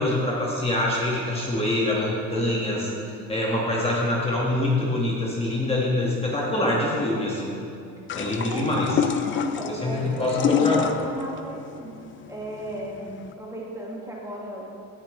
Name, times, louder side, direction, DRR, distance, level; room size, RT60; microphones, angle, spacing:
voice 1, 0.0-2.9 3.3-7.5 8.2-8.9 9.8-10.9, left 1 dB, 15° left, -4 dB, 1.7 m, -25 dB
voice 2, 2.3-3.3 8.5-8.8 9.3-11.9 12.3-14.7, equal, 10° right, -4 dB, 2.0 m, -35 dB
sound 1, 8.1-13.3, left 8 dB, 35° left, 0.5 m, -27 dB
17.0 x 8.7 x 3.3 m, 2.6 s
cardioid pair, 125°, 35 cm